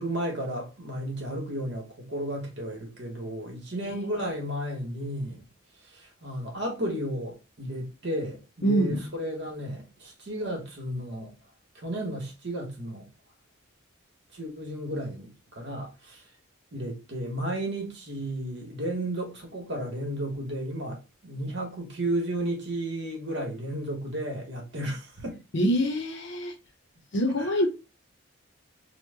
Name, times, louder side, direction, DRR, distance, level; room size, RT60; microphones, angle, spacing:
voice 1, 0.0-5.5 5.8-11.3 11.7-13.1 14.3-16.2 16.7-25.4 27.4-27.5, right 1 dB, 55° right, 1.1 m, -33 dB
voice 2, 8.6-9.0 25.5-26.5 27.1-27.7, equal, 55° left, 0.6 m, -25 dB
3.0 x 2.1 x 3.3 m
head